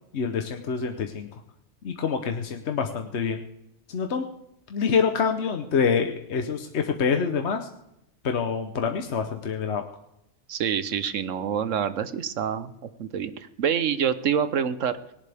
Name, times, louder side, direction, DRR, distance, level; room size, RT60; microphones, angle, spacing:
voice 1, 0.1-1.3 1.8-3.4 3.9-4.3 4.7-7.7 8.2-9.8, left 6 dB, 65° left, 5 dB, 1.2 m, -26 dB
voice 2, 10.5-12.7 13.0-15.0, right 8 dB, 90° right, 13 dB, 1.3 m, -26 dB
19.5 x 17.5 x 3.5 m, 0.82 s
omnidirectional pair, 1.3 m